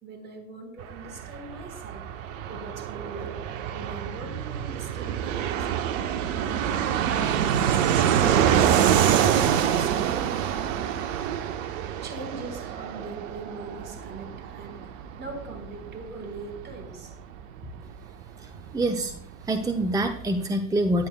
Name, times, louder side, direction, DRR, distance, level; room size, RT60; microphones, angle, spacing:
voice 1, 0.0-2.0 2.5-3.3 3.7-5.7 6.2-6.6 7.1-10.4 12.0-14.8 15.2-17.1 17.6-17.8, right 3 dB, 25° right, 3 dB, 3.9 m, -40 dB
Fixed-wing aircraft airplane, 0.8-19.2 19.4-19.5 19.7-20.4, right 9 dB, 60° right, 1.0 m, -26 dB
voice 2, 18.4-19.1 19.4-21.1, right 1 dB, 10° right, 7 dB, 0.8 m, -26 dB
16.5 x 10.5 x 2.2 m, 0.66 s
figure-of-eight pair, 75°, 44 cm